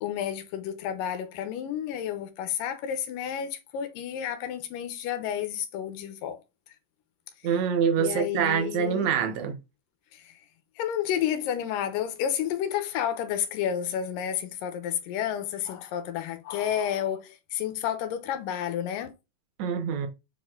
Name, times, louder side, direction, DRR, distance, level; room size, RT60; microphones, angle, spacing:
voice 1, 0.0-6.4 6.7-6.8 8.0-9.2 10.1-10.4 10.8-19.1, left 9 dB, 90° left, 2.6 m, -31 dB
voice 2, 7.4-9.6 19.6-20.1, right 7 dB, 65° right, 2.2 m, -25 dB
7.5 x 4.3 x 3.7 m
omnidirectional pair, 3.9 m